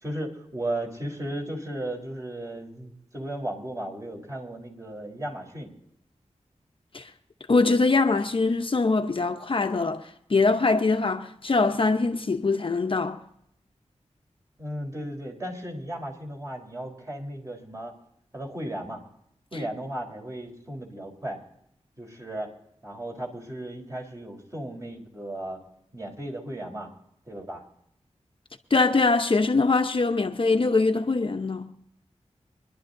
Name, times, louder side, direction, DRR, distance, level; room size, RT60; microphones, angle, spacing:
voice 1, 0.0-5.7 14.6-17.9 18.3-19.0 19.5-21.4 22.0-22.5 22.8-25.6 25.9-26.9 27.3-27.6, right 1 dB, 25° right, 3.7 m, -35 dB
voice 2, 7.5-13.2 28.7-31.7, left 3 dB, 45° left, 0.8 m, -23 dB
25.0 x 11.5 x 2.6 m
wide cardioid pair, 70°, 12 cm